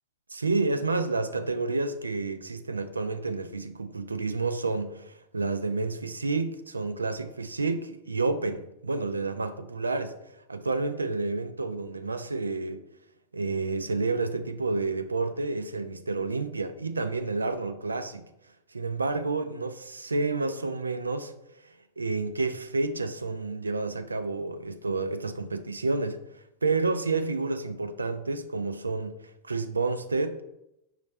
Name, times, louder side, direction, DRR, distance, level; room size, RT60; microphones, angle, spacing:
voice 1, 0.3-10.1 10.5-12.8 13.3-18.3 18.7-21.3 22.0-30.4, right 3 dB, 80° right, 0.3 m, -30 dB
5.1 x 3.2 x 3.2 m
figure-of-eight pair, 90°, 0 cm